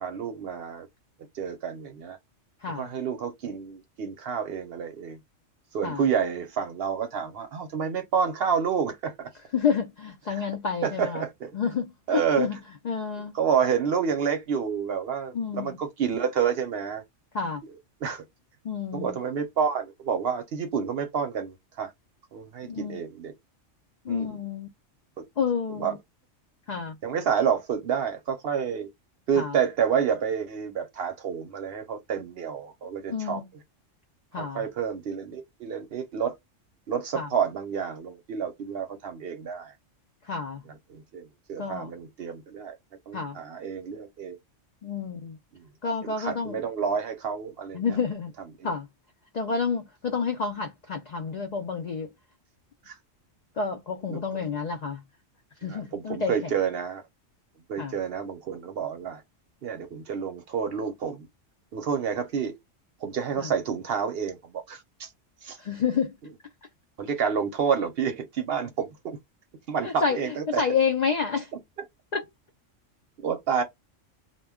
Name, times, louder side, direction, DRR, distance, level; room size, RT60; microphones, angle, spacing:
voice 1, 0.0-0.9 1.3-2.2 2.8-5.2 5.7-9.3 10.3-10.5 10.8-11.5 12.1-12.6 13.3-17.0 17.6-18.2 18.9-21.9 22.3-23.3 24.1-24.4 25.2-25.3 25.8-26.0 27.0-28.9 29.3-33.6 34.4-36.4 36.9-39.7 40.7-42.8 43.1-44.4 45.5-45.6 46.0-48.0 48.6-48.7 52.9-53.0 54.1-54.4 55.6-57.0 57.7-59.2 59.6-61.3 61.7-62.6 63.0-65.1 65.4-65.6 66.2-66.3 67.0-69.2 69.7-70.6 73.2-73.6, right 7 dB, 60° right, 0.7 m, -29 dB
voice 2, 9.5-11.2 11.5-12.6 12.9-13.3 15.3-15.8 17.3-17.6 18.6-19.2 22.6-23.0 24.1-24.7 25.4-26.0 26.7-27.0 29.4-29.5 33.1-33.5 34.3-34.6 37.1-37.3 40.3-40.6 41.6-41.9 43.1-43.4 44.8-45.4 45.8-46.6 47.7-48.3 48.6-48.9 49.3-52.1 53.6-55.0 55.6-56.3 57.8-57.9 63.4-63.5 65.6-66.1 69.8-70.2 70.6-71.5 72.1-72.2, left 6 dB, 80° left, 0.3 m, -29 dB
2.2 x 2.1 x 3.5 m
omnidirectional pair, 1.3 m